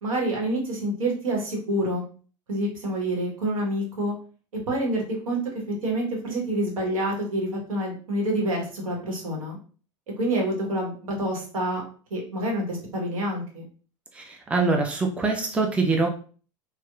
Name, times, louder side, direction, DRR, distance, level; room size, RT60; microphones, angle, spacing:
voice 1, 0.0-2.0 2.5-4.1 4.7-5.4 5.7-9.6 10.2-11.8 12.1-13.6, right 1 dB, 80° right, -1 dB, 0.9 m, -27 dB
voice 2, 14.1-16.1, right 3 dB, 5° right, 2 dB, 0.4 m, -24 dB
2.8 x 2.0 x 2.2 m, 0.40 s
hypercardioid pair, 90°, 17 cm